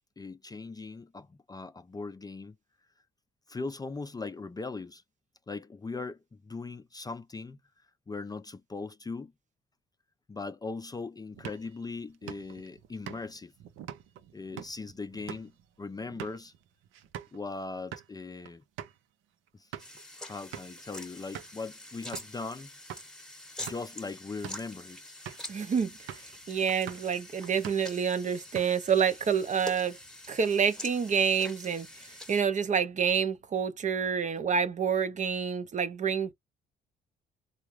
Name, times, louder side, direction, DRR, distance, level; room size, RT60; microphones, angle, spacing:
voice 1, 0.2-2.6 3.5-5.0 5.5-7.6 8.1-9.3 10.3-13.5 14.3-15.5 15.8-16.5 17.3-18.6 19.5-19.7 20.2-22.7 23.6-25.1, left 3 dB, 20° left, 0.4 m, -39 dB
sound 1, 11.3-17.4 17.8-18.1 18.5-18.6 18.8-19.0 19.5-20.0 20.5-20.8 21.3-21.6 22.1-22.4 22.9-23.1 23.5-24.0 24.3-24.7 25.3-25.5 26.1-26.4 26.7-27.1 27.4-28.0 28.3-29.0, right 10 dB, 90° right, 0.6 m, -44 dB
sound 2, 19.8-32.4, left 1 dB, 5° left, 1.0 m, -46 dB
voice 2, 25.5-25.9 26.5-30.0 30.3-31.9 32.3-36.3, right 7 dB, 40° right, 0.6 m, -28 dB
3.7 x 2.3 x 3.0 m
cardioid pair, 90°, 20 cm